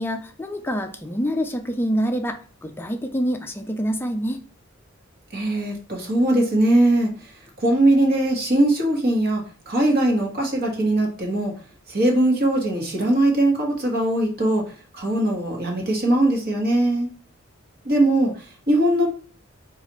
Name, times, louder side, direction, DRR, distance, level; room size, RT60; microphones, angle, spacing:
voice 1, 0.0-4.4, equal, 10° left, 5 dB, 0.4 m, -26 dB
voice 2, 5.3-11.5 11.9-14.6 14.9-17.1 17.8-19.1, right 1 dB, 50° right, 1 dB, 1.4 m, -20 dB
4.1 x 4.0 x 3.0 m, 0.39 s
head